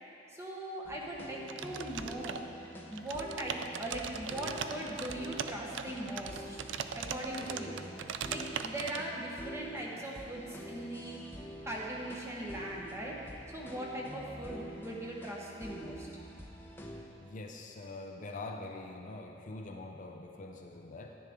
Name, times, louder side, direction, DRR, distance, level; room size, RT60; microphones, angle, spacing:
voice 1, 0.3-2.5 2.9-6.7 6.9-7.8 8.2-13.2 13.5-16.1, right 1 dB, 15° right, -3 dB, 1.2 m, -40 dB
sound 1, 0.8-17.0, equal, 10° left, 0.8 m, -47 dB
sound 2, 1.5-2.7 2.9-9.0, right 7 dB, 80° right, 0.4 m, -40 dB
voice 2, 17.2-21.2, left 2 dB, 45° left, 2 dB, 0.6 m, -44 dB
10.5 x 10.0 x 3.7 m, 2.8 s
head